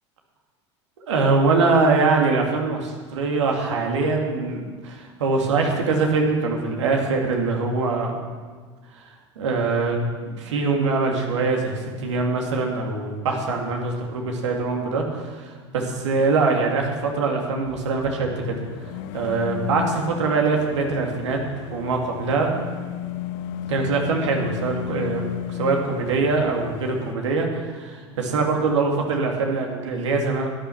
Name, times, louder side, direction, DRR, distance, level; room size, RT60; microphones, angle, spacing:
voice 1, 1.0-8.1 9.0-9.1 9.4-10.0 10.2-18.6 19.1-21.4 21.7-22.5 23.7-30.5, right 4 dB, 75° right, 1 dB, 2.3 m, -23 dB
sound 1, 17.6-27.1, left 11 dB, 60° left, 0.6 m, -34 dB
12.0 x 10.5 x 5.8 m, 1.5 s
hypercardioid pair, 85°, 15 cm